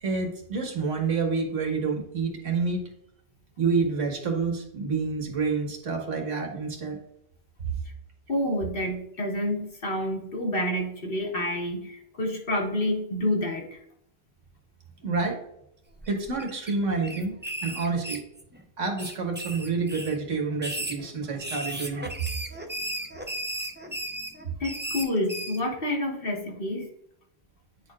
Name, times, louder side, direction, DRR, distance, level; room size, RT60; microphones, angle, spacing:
voice 1, 0.0-2.8 3.6-7.0 15.0-15.4 16.1-17.4 17.6-18.2 18.8-22.2, right 4 dB, 75° right, 1 dB, 1.7 m, -28 dB
voice 2, 8.3-13.8 24.6-26.9, left 1 dB, 50° left, 0 dB, 1.5 m, -28 dB
sound 1, 16.0-16.7 17.0-18.6 19.0-20.2 20.5-25.6, right 1 dB, 10° right, 0.6 m, -35 dB
9.5 x 4.7 x 2.4 m, 0.76 s
omnidirectional pair, 1.3 m